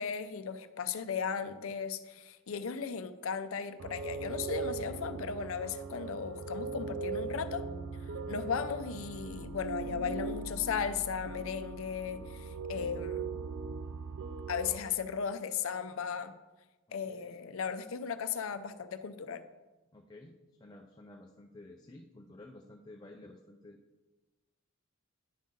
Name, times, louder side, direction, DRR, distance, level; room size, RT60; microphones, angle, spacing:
voice 1, 0.0-7.7 8.3-13.3 14.5-16.4 16.9-19.4, left 6 dB, 70° left, 11 dB, 0.5 m, -36 dB
sound 1, 3.8-14.8, right 4 dB, 65° right, 0.5 m, -39 dB
voice 2, 16.9-17.4 19.9-23.8, left 2 dB, 20° left, 3 dB, 0.4 m, -53 dB
10.5 x 3.8 x 5.3 m, 1.2 s
head